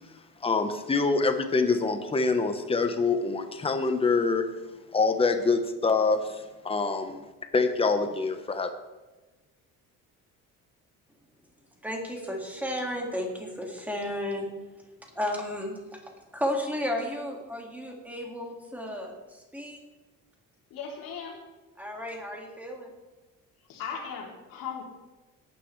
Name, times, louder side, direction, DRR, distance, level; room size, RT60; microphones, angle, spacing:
voice 1, 0.4-4.4 4.9-7.2 7.5-8.7, left 4 dB, 15° left, 7 dB, 0.9 m, -25 dB
voice 2, 11.8-14.5 15.2-16.0 16.3-19.8 21.8-22.9, left 1 dB, 5° right, 0 dB, 1.9 m, -33 dB
voice 3, 20.7-21.4 23.7-24.8, left 6 dB, 80° left, -1 dB, 3.0 m, -37 dB
18.0 x 9.7 x 3.2 m, 1.2 s
cardioid pair, 150°, 34 cm